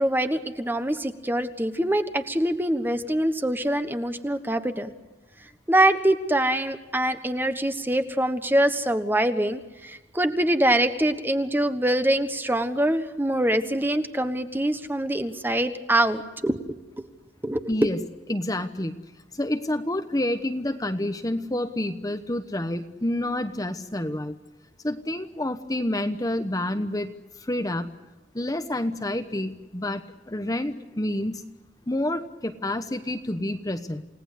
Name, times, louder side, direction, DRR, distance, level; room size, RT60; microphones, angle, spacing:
voice 1, 0.0-4.9 5.7-16.6 17.0-17.1 17.4-17.6, right 1 dB, 10° right, 8 dB, 1.3 m, -24 dB
voice 2, 17.7-18.0 18.3-19.0 19.3-24.4 24.8-27.9 28.3-30.0 30.3-31.4 31.9-34.0, left 1 dB, 20° left, 7 dB, 1.1 m, -28 dB
29.0 x 18.0 x 8.3 m, 1.1 s
head